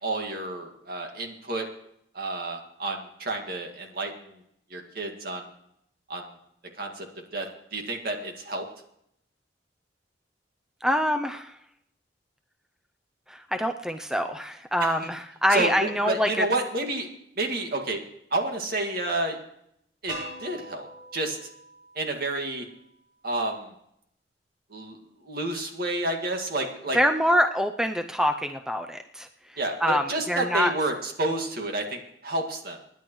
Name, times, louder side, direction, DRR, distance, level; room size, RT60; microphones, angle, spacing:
voice 1, 0.0-1.7 2.1-4.4 4.7-5.5 6.1-6.3 6.8-7.1 7.3-8.6 14.8-15.0 15.5-17.1 17.4-18.0 18.3-19.4 20.0-20.9 21.1-21.4 22.0-22.7 23.2-23.7 24.7-25.0 25.2-27.0 29.6-32.8, right 2 dB, 55° right, 3 dB, 2.0 m, -30 dB
voice 2, 10.8-11.5 13.3-16.5 26.9-29.3 29.8-30.7, equal, 5° right, 6 dB, 0.4 m, -25 dB
sound 1, 20.1-23.0, equal, 30° right, 7.4 m, -42 dB
26.0 x 10.5 x 3.1 m, 0.75 s
head